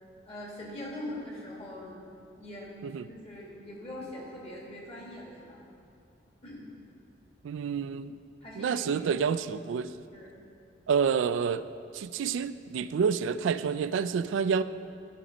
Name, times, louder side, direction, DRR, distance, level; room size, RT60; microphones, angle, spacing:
voice 1, 0.2-2.0 2.4-5.6 6.4-6.7 8.4-9.1 10.1-10.4, left 1 dB, 35° left, -3 dB, 2.0 m, -42 dB
voice 2, 7.4-8.1 8.6-9.9 10.9-11.7 11.9-14.6, right 6 dB, 90° right, 14 dB, 0.3 m, -28 dB
13.0 x 5.3 x 4.9 m, 2.5 s
head